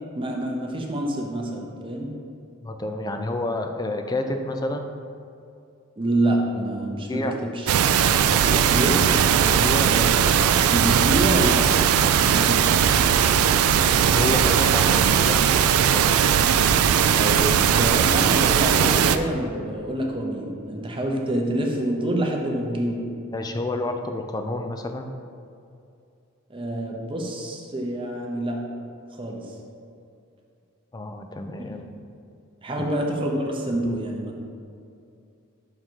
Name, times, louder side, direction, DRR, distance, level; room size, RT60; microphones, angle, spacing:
voice 1, 0.1-2.1 6.0-7.7 8.7-8.9 9.9-10.3 10.7-11.6 12.2-12.8 17.1-23.1 26.5-28.6 29.2-29.5 32.6-34.5, right 1 dB, 25° right, 0 dB, 0.6 m, -27 dB
voice 2, 2.6-4.9 7.1-7.3 8.2-8.7 9.4-9.9 14.0-15.5 15.7-16.0 23.3-25.1 30.9-31.8 32.8-32.9, left 2 dB, 20° left, 5 dB, 0.3 m, -29 dB
sound 1, 7.7-19.2, right 8 dB, 85° right, 0.3 m, -19 dB
6.4 x 3.6 x 4.5 m, 2.5 s
head